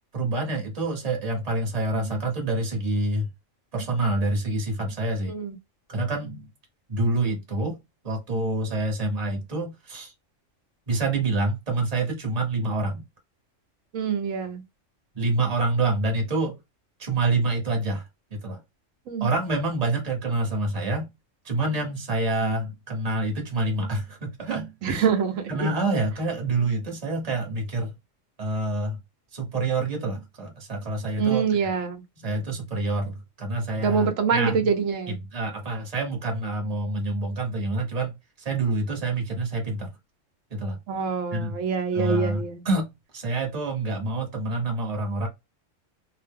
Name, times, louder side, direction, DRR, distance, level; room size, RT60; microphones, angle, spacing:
voice 1, 0.1-3.3 3.7-5.3 5.9-6.5 6.9-7.8 8.0-10.1 10.9-13.0 15.1-16.6 17.0-18.0 18.3-18.6 19.2-21.1 21.4-25.1 25.5-27.9 28.4-29.0 29.3-31.5 32.2-34.6 35.1-38.1 38.4-39.9 40.5-40.8 41.3-41.6 41.9-42.9 43.1-45.3, right 2 dB, 30° right, 1.0 m, -27 dB
voice 2, 13.9-14.6 19.1-19.3 24.8-25.7 31.2-32.0 33.8-35.2 40.9-42.6, right 6 dB, 80° right, 1.0 m, -25 dB
2.6 x 2.0 x 3.4 m
omnidirectional pair, 1.3 m